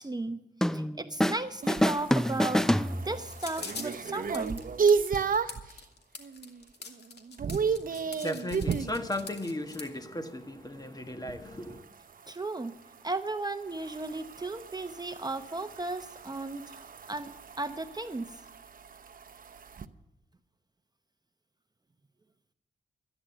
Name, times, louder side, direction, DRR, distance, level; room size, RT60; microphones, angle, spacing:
voice 1, 0.0-4.6 12.3-12.8 13.0-16.8 17.1-17.3 17.6-18.4, right 2 dB, 20° right, 0.8 m, -35 dB
sound 1, 0.6-1.4 1.7-3.4, equal, 5° left, 0.4 m, -27 dB
sound 2, 1.6-5.7 6.2-6.6 6.9-9.0 11.5-19.9, right 5 dB, 55° right, 0.7 m, -33 dB
sound 3, 3.3-9.9, left 5 dB, 75° left, 2.1 m, -44 dB
voice 2, 7.8-11.8, left 1 dB, 20° left, 1.4 m, -36 dB
13.0 x 10.0 x 7.8 m
cardioid pair, 60°, 18 cm